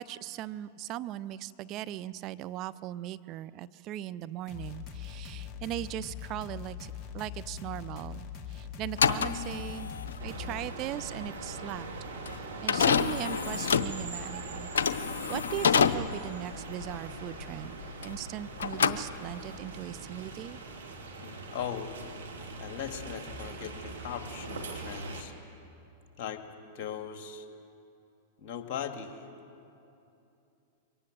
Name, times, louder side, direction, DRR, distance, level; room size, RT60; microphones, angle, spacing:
voice 1, 0.0-9.9 10.2-11.9 12.3-14.7 15.3-20.6, right 13 dB, 40° right, 14 dB, 0.5 m, -39 dB
sound 1, 4.5-10.7, left 8 dB, 30° left, 2.0 m, -42 dB
sound 2, 8.8-18.3 18.6-19.6, left 6 dB, 70° left, 0.7 m, -28 dB
sound 3, 10.2-25.2, right 3 dB, 75° right, 2.7 m, -42 dB
voice 2, 21.2-21.9 22.6-25.3 26.2-26.4 26.8-27.4 28.4-29.1, left 8 dB, 45° left, 6 dB, 2.2 m, -39 dB
23.0 x 18.5 x 7.5 m, 2.8 s
figure-of-eight pair, 100°, 0 cm